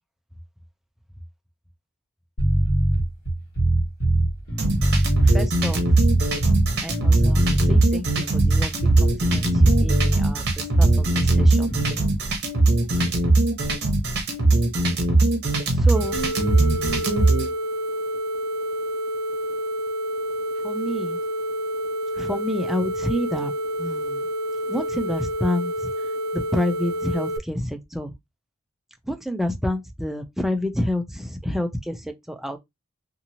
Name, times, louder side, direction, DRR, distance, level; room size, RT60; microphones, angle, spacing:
sound 1, 2.4-12.0, right 1 dB, 50° left, 1.4 m, -21 dB
sound 2, 4.6-17.5, right 2 dB, 50° right, 0.9 m, -20 dB
voice 1, 5.2-5.9 6.8-10.4 10.8-11.7 15.7-16.2 20.6-21.2 22.2-23.5 23.8-24.2 24.7-25.7 26.3-28.1 29.1-32.6, left 1 dB, ahead, 0.4 m, -28 dB
sound 3, 16.0-27.4, equal, 75° right, 0.4 m, -28 dB
2.7 x 2.6 x 2.8 m
head